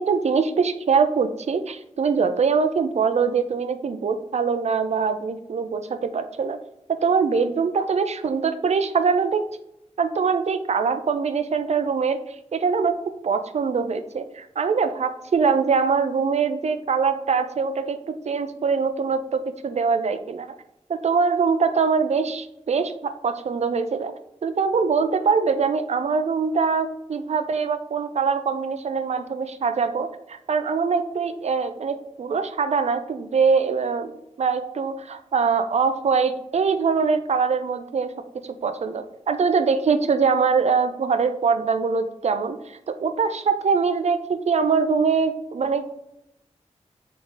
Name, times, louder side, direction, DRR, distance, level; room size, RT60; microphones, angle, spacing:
voice 1, 0.0-6.6 6.9-9.5 10.0-20.5 20.9-24.1 24.4-34.1 34.4-38.1 38.4-45.8, right 5 dB, 65° right, 9 dB, 0.5 m, -23 dB
3.7 x 3.7 x 3.9 m, 0.83 s
wide cardioid pair, 100°, 12 cm